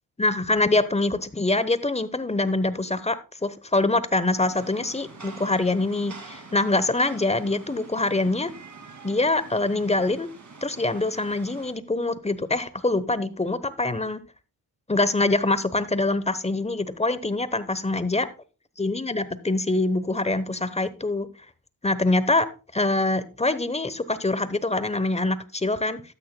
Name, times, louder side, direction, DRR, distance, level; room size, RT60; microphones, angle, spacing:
voice 1, 0.2-8.5 9.0-10.3 10.6-14.2 14.9-18.3 18.8-21.3 21.8-26.0, left 2 dB, 15° left, 15 dB, 1.0 m, -24 dB
Rain, 4.5-11.7, right 4 dB, 35° right, 2.5 m, -45 dB
13.0 x 8.7 x 2.3 m, 0.33 s
supercardioid pair, 45°, 48 cm